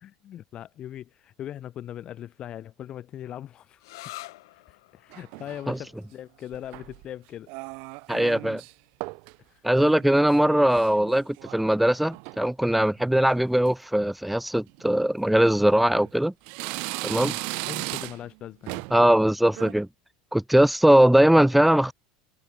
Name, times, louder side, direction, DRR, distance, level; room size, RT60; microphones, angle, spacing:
voice 1, 0.0-3.9 4.5-7.5 9.4-9.6 17.1-18.8, left 11 dB, 40° left, 0.9 m, -40 dB
sound 1, 3.8-11.2, left 20 dB, 70° left, 7.7 m, -50 dB
sound 2, 5.1-5.8 6.5-7.1 7.5-8.7 9.0-9.4 9.7-11.6 12.0-12.4 13.0-13.3 13.7-13.8 14.7-14.8 15.5-16.1 16.5-18.3 18.7-19.0 19.4-19.7, right 33 dB, 60° right, 1.7 m, -37 dB
voice 2, 8.1-8.6 9.6-16.3 17.0-17.3 18.9-19.9 20.3-21.9, right 1 dB, 5° right, 0.6 m, -20 dB
hypercardioid pair, 85°, 2 cm